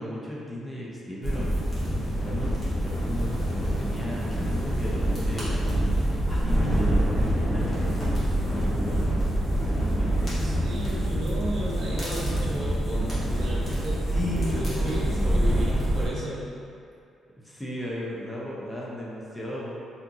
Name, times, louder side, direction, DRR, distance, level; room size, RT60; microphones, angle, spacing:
voice 1, 0.0-1.5 2.1-5.5 6.3-9.3 9.7-10.4 14.1-15.6 17.4-19.7, equal, 15° left, -5 dB, 0.6 m, -35 dB
sound 1, 1.2-16.1, right 1 dB, 35° left, 1.3 m, -26 dB
voice 2, 10.1-14.0 14.4-16.5, right 1 dB, 55° right, -5 dB, 0.8 m, -34 dB
3.4 x 2.9 x 2.6 m, 2.4 s
cardioid pair, 90°, 0 cm